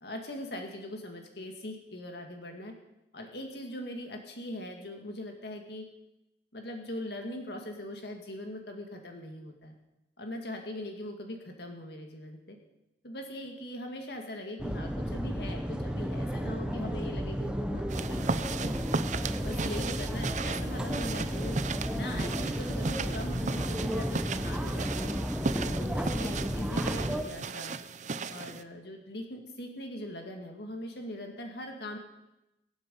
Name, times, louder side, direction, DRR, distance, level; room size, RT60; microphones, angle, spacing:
voice 1, 0.0-2.7 3.1-5.8 6.5-9.7 10.2-12.6 13.0-18.7 19.3-21.6 21.9-25.2 25.7-27.8 28.3-32.0, left 1 dB, 65° left, 3 dB, 2.0 m, -41 dB
sound 1, 14.6-27.2, equal, 5° right, 0.9 m, -33 dB
sound 2, 17.9-28.6, right 4 dB, 45° right, 0.6 m, -36 dB
22.5 x 8.7 x 5.4 m, 0.93 s
head